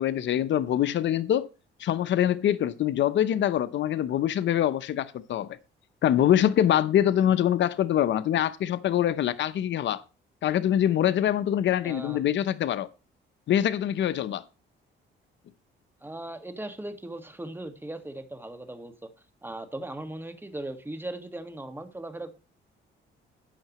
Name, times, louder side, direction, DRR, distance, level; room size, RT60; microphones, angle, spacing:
voice 1, 0.0-1.5 1.8-5.6 6.0-10.0 10.4-12.9 13.5-14.4, left 11 dB, 65° left, 0.9 m, -24 dB
voice 2, 11.8-12.2 16.0-19.1 19.4-22.3, right 1 dB, 10° right, 1.8 m, -38 dB
12.5 x 9.0 x 3.1 m
cardioid pair, 90°, 20 cm